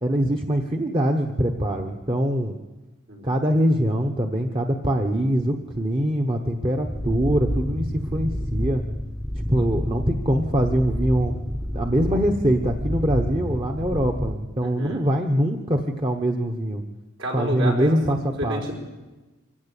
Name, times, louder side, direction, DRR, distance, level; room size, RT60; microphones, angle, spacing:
voice 1, 0.0-2.6 3.2-8.8 9.5-11.4 11.7-16.8 17.3-18.6, equal, 25° right, 3 dB, 1.1 m, -23 dB
sound 1, 6.8-14.4, left 1 dB, 5° right, 0.8 m, -29 dB
voice 2, 14.6-15.0 17.2-18.0 18.4-18.8, equal, 75° right, 0 dB, 5.2 m, -30 dB
24.5 x 16.5 x 8.4 m, 1.2 s
head